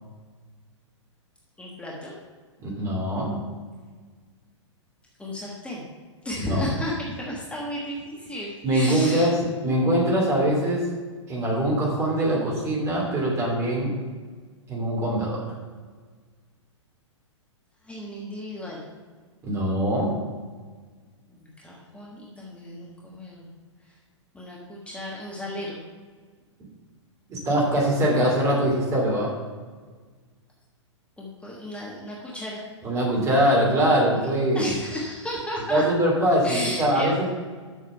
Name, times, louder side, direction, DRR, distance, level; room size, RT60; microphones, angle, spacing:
voice 1, 1.6-2.1 5.2-5.8 6.2-9.3 17.8-18.8 21.3-23.5 24.3-25.8 31.2-32.6 34.5-35.8 36.4-37.3, left 1 dB, 5° left, -4 dB, 1.3 m, -34 dB
voice 2, 2.6-3.4 6.5-6.6 8.6-9.4 9.6-10.9 11.3-13.9 14.7-15.4 19.4-20.2 27.3-29.3 32.8-34.7 35.7-37.3, right 1 dB, 20° right, -3 dB, 2.9 m, -22 dB
7.3 x 6.5 x 5.5 m, 1.5 s
figure-of-eight pair, 110°, 16 cm